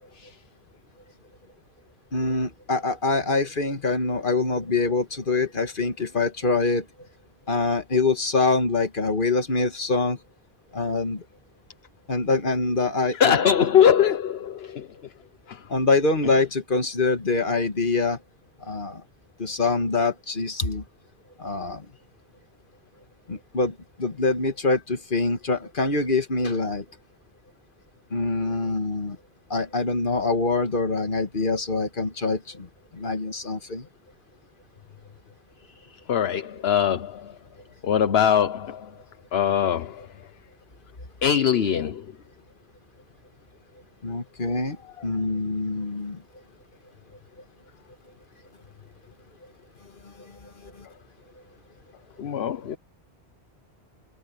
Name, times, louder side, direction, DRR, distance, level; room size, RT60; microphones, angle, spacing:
voice 1, 2.1-6.8 7.5-10.2 10.7-11.2 12.1-13.5 15.7-18.2 18.6-19.0 19.4-20.8 21.4-21.9 23.3-26.8 28.1-29.2 29.5-32.7 32.9-33.9 44.0-44.8 45.0-46.2 50.2-50.3 50.7-50.9, left 3 dB, 50° left, 2.0 m, -25 dB
voice 2, 13.1-14.9 15.5-15.6 36.1-37.3 37.8-38.9 39.3-40.0 41.2-42.1 52.2-52.8, left 8 dB, 65° left, 1.1 m, -22 dB
omnidirectional pair, 1.1 m